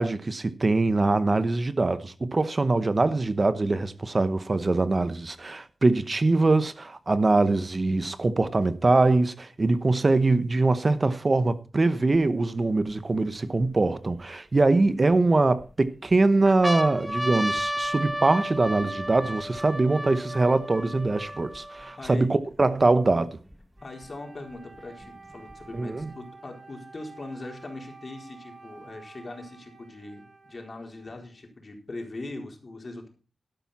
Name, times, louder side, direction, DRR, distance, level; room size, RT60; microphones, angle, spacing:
voice 1, 0.0-23.4 25.7-26.1, right 3 dB, 40° right, 0.9 m, -23 dB
sound 1, 12.1-12.2 12.9-14.2 14.9-15.6 16.1-16.2 16.5-22.1 22.8-22.9 23.1-24.1 25.0-26.0, equal, ahead, 1.2 m, -33 dB
voice 2, 14.7-15.0 22.0-22.3 23.8-33.1, left 2 dB, 50° left, 4.1 m, -41 dB
Wind instrument woodwind instrument, 23.8-31.5, right 4 dB, 85° right, 5.7 m, -50 dB
12.0 x 12.0 x 4.2 m
wide cardioid pair, 85°, 0 cm